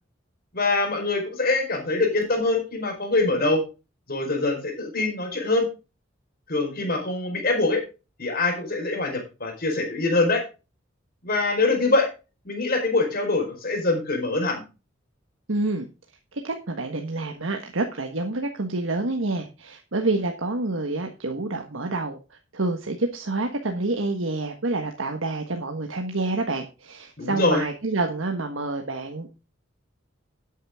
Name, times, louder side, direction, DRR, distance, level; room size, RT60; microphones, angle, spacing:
voice 1, 0.5-3.6 4.1-5.7 6.5-7.8 8.2-10.4 11.2-12.1 12.4-14.6 27.2-27.6, left 2 dB, 50° left, 4 dB, 4.6 m, -24 dB
voice 2, 15.5-15.9 16.3-29.4, right 2 dB, 80° right, 4 dB, 1.4 m, -28 dB
11.5 x 9.2 x 3.6 m, 0.30 s
head